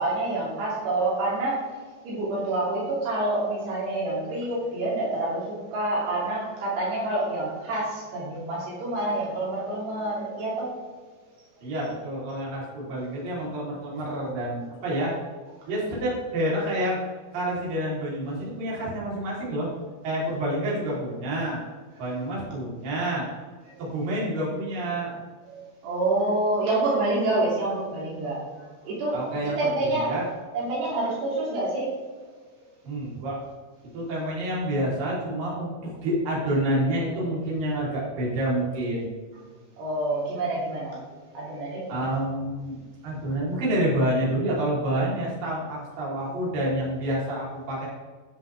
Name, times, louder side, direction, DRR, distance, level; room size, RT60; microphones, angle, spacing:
voice 1, 0.0-1.7 2.0-10.7 23.7-23.8 25.5-29.2 29.6-30.1 30.5-31.9 39.8-41.0 41.3-42.2, right 2 dB, 80° right, -6 dB, 5.0 m, -27 dB
voice 2, 11.6-15.1 15.7-17.0 17.3-19.7 20.0-21.6 22.0-23.3 23.8-25.1 29.1-30.3 32.8-33.4 33.9-39.1 41.9-42.8 43.0-47.9, right 1 dB, 55° right, -6 dB, 5.1 m, -28 dB
12.5 x 10.5 x 3.5 m, 1.4 s
omnidirectional pair, 4.8 m